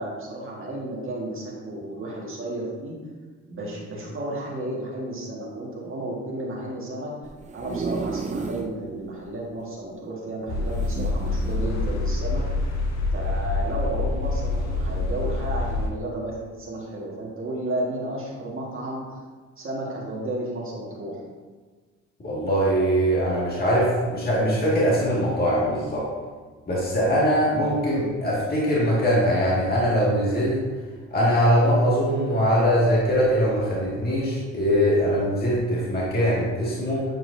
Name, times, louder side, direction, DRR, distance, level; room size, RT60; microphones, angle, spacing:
voice 1, 0.0-3.0 3.5-7.1 7.5-12.4 13.1-19.0 19.6-21.2, right 1 dB, 45° right, -4 dB, 1.7 m, -32 dB
sound 1, 7.2-8.8 9.2-9.3 9.5-9.6 10.7-11.7 12.3-12.5, right 4 dB, 25° right, 0.4 m, -32 dB
sound 2, 10.5-15.9, left 2 dB, 65° left, 1.3 m, -26 dB
voice 2, 22.2-26.1 26.7-30.6 31.1-37.0, equal, 30° left, -7 dB, 1.9 m, -22 dB
9.2 x 4.6 x 2.7 m, 1.4 s
cardioid pair, 90°, 30 cm